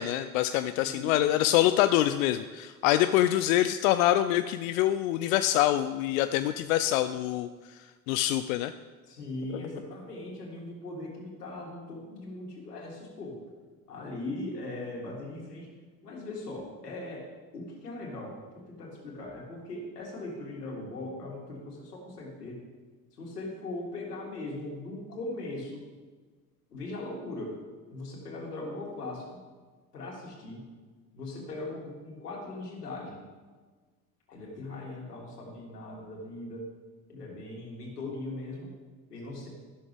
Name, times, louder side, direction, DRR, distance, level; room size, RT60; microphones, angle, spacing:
voice 1, 0.0-8.7 9.5-9.6, left 13 dB, 60° left, 11 dB, 0.6 m, -25 dB
voice 2, 9.1-13.3 13.9-15.7 16.0-17.3 17.5-18.4 18.7-22.6 23.2-25.8 26.7-27.5 27.9-29.3 29.9-30.6 31.1-33.2 34.3-36.7 37.1-38.7 39.1-39.5, left 2 dB, 80° left, -2 dB, 3.0 m, -39 dB
13.5 x 12.0 x 3.4 m, 1.4 s
figure-of-eight pair, 65°, 46 cm